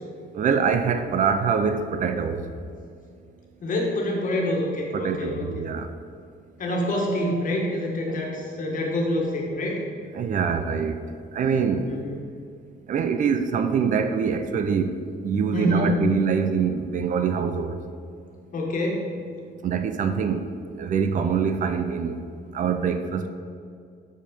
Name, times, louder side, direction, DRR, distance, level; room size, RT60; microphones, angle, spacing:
voice 1, 0.3-2.5 4.9-5.9 8.1-8.2 10.1-11.0 11.3-12.0 12.9-17.8 19.6-22.2 22.5-23.3, right 6 dB, 40° right, 8 dB, 0.5 m, -24 dB
voice 2, 3.6-5.4 6.6-9.8 11.9-12.2 15.5-16.0 18.5-19.0, left 1 dB, 45° left, -1 dB, 1.6 m, -26 dB
7.8 x 6.6 x 5.3 m, 2.3 s
cardioid pair, 175°, 20 cm